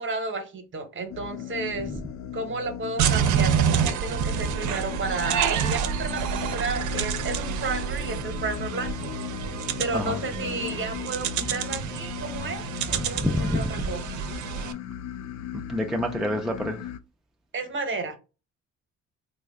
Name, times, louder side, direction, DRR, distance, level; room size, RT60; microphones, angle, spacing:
voice 1, 0.0-2.0 2.3-9.1 9.8-14.0 17.5-18.2, right 3 dB, 40° right, 0.9 m, -32 dB
sound 1, 1.1-17.0, left 10 dB, 65° left, 0.5 m, -37 dB
sound 2, 3.0-14.7, right 8 dB, 75° right, 0.5 m, -28 dB
voice 2, 13.2-13.7 15.7-16.9, equal, ahead, 0.4 m, -27 dB
3.2 x 2.1 x 3.4 m
cardioid pair, 90°, 30 cm